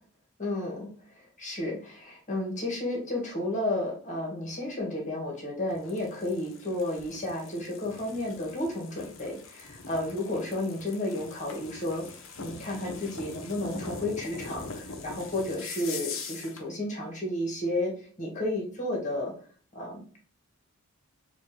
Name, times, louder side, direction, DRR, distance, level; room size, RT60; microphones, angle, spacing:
voice 1, 0.4-12.1 12.4-19.3 19.7-20.2, left 1 dB, 35° left, -1 dB, 1.5 m, -32 dB
sound 1, 5.7-16.7, left 4 dB, 65° left, 0.7 m, -42 dB
4.3 x 2.5 x 3.2 m, 0.43 s
head